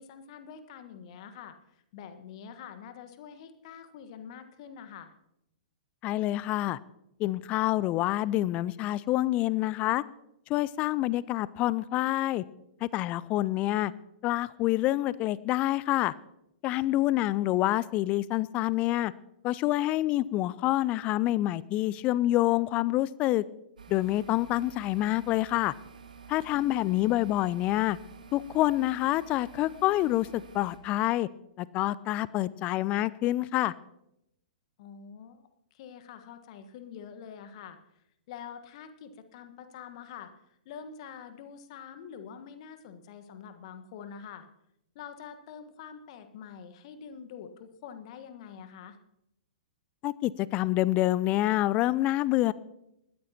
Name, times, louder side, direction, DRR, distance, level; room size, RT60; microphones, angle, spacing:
voice 1, 0.0-5.1 34.8-35.4 35.7-37.8 38.3-44.5 44.9-49.0, left 7 dB, 45° left, 9 dB, 1.4 m, -46 dB
voice 2, 6.0-6.8 7.2-10.0 10.5-12.4 12.8-13.9 14.2-16.1 16.6-19.1 19.4-23.4 23.9-25.7 26.3-28.0 28.3-31.3 31.6-33.7 50.0-52.5, left 16 dB, 30° left, 20 dB, 0.4 m, -27 dB
sound 1, 23.8-30.8, right 6 dB, 65° right, 1.7 m, -50 dB
20.5 x 14.0 x 2.9 m, 0.82 s
figure-of-eight pair, 110°, 5 cm